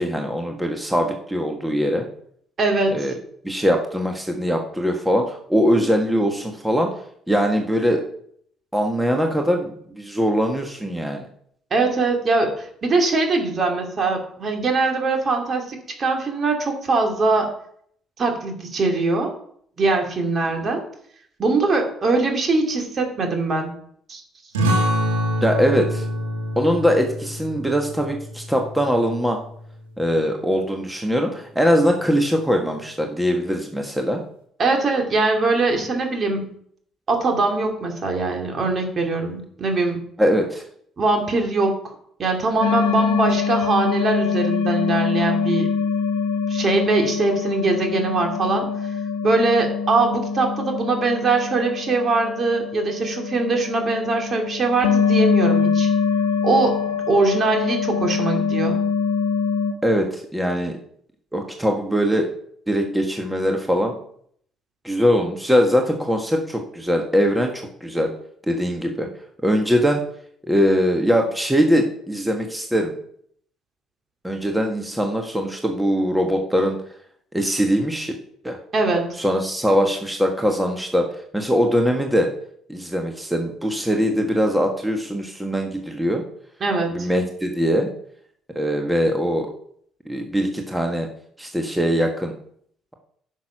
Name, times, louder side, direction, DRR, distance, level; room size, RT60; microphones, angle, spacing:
voice 1, 0.0-2.1 2.9-3.1 3.4-6.9 7.3-8.0 8.7-11.3 25.4-26.0 26.5-29.4 30.0-34.2 40.2-40.6 59.8-60.8 61.3-62.3 62.7-63.9 64.8-68.1 68.5-69.1 69.4-70.0 70.5-72.9 74.2-76.8 77.3-78.1 78.4-78.6 79.2-81.1 81.3-82.3 82.7-86.2 86.9-87.9 88.5-89.5 90.0-91.1 91.4-92.3, equal, 5° right, 2 dB, 1.5 m, -21 dB
voice 2, 2.6-3.1 11.7-17.5 18.2-19.3 19.8-20.8 21.4-23.7 24.1-24.2 34.6-36.5 37.1-40.0 41.0-45.7 46.5-48.7 49.2-55.9 56.4-58.8 78.7-79.1 86.6-87.1, right 3 dB, 45° right, 3 dB, 2.6 m, -22 dB
sound 1, 24.5-29.7, equal, 80° right, 2.0 m, -26 dB
sound 2, 42.6-59.7, left 5 dB, 75° left, 0.8 m, -24 dB
10.5 x 6.5 x 5.7 m, 0.65 s
figure-of-eight pair, 50°, 0 cm